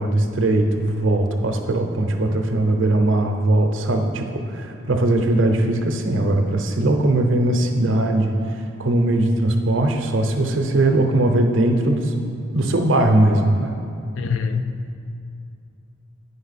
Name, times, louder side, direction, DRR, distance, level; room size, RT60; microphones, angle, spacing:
voice 1, 0.0-12.1 12.5-13.8, right 1 dB, 70° right, 4 dB, 0.7 m, -20 dB
voice 2, 14.2-15.0, left 5 dB, 80° left, 8 dB, 0.5 m, -25 dB
9.3 x 5.5 x 4.1 m, 2.4 s
head